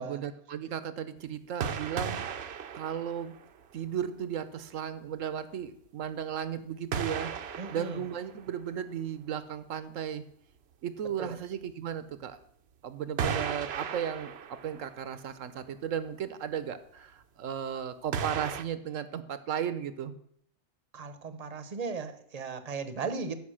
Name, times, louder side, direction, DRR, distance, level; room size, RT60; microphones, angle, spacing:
voice 1, 0.0-2.5 2.7-3.3 3.7-7.3 7.7-10.2 10.8-12.4 12.8-20.1, right 8 dB, 80° right, 13 dB, 1.2 m, -35 dB
sound 1, 1.6-3.8 4.2-4.3 6.9-8.8 11.7-11.8 13.2-15.1 15.4-15.5 18.1-18.6, right 7 dB, 60° right, 0.9 m, -35 dB
voice 2, 7.6-8.0 11.2-11.4 20.9-23.4, right 4 dB, 35° right, 11 dB, 0.9 m, -37 dB
14.0 x 5.2 x 6.4 m, 0.69 s
omnidirectional pair, 1.3 m